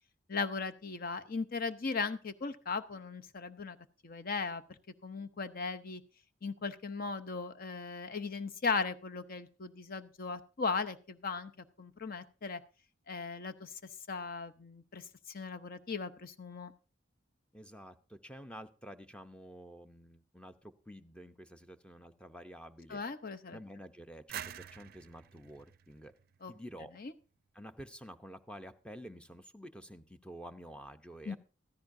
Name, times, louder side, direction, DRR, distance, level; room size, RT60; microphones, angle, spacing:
voice 1, 0.3-3.8 4.0-6.0 6.4-11.5 11.8-12.6 13.1-13.7 14.1-16.7 22.9-23.6 26.4-26.5 27.0-27.1 31.3-31.4, left 4 dB, 50° left, 10 dB, 0.7 m, -37 dB
voice 2, 17.5-23.0 23.5-26.1 26.5-26.9 27.5-31.4, equal, 5° left, 9 dB, 0.7 m, -50 dB
sound 1, 24.3-27.0, right 9 dB, 50° right, 0.5 m, -47 dB
15.5 x 13.5 x 2.6 m, 0.35 s
head